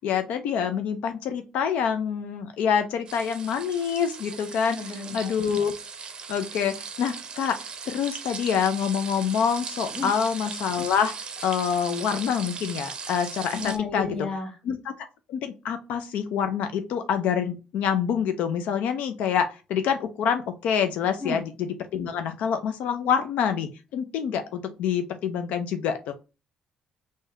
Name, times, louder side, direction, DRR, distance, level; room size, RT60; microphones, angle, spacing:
voice 1, 0.0-5.7 6.3-11.1 11.4-14.2 14.6-14.9 15.3-26.1, left 7 dB, 85° left, 8 dB, 0.5 m, -26 dB
sound 1, 3.1-13.8, right 5 dB, 40° right, 0.5 m, -38 dB
voice 2, 4.7-5.3 9.9-10.1 13.5-14.5 21.2-21.4, left 4 dB, 30° left, 5 dB, 0.9 m, -32 dB
3.5 x 2.7 x 3.2 m, 0.31 s
cardioid pair, 125°, 2 cm